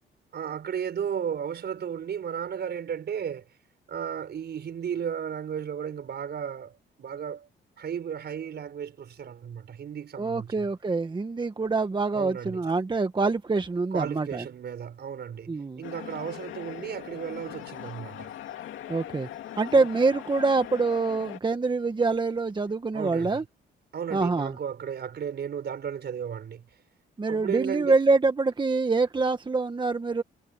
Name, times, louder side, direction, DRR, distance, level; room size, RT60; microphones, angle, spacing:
voice 1, 0.3-3.4 3.9-7.5 7.8-10.7 12.1-12.6 13.9-18.3 19.7-19.9 22.9-23.4 23.9-26.6 27.3-28.0, right 8 dB, 55° right, 5.1 m, -34 dB
voice 2, 10.2-14.4 15.5-15.8 18.9-19.3 19.6-23.4 24.1-24.5 27.2-30.2, right 3 dB, 25° right, 1.4 m, -25 dB
sound 1, 15.8-21.4, left 11 dB, 80° left, 2.6 m, -40 dB
cardioid pair, 90°, 20 cm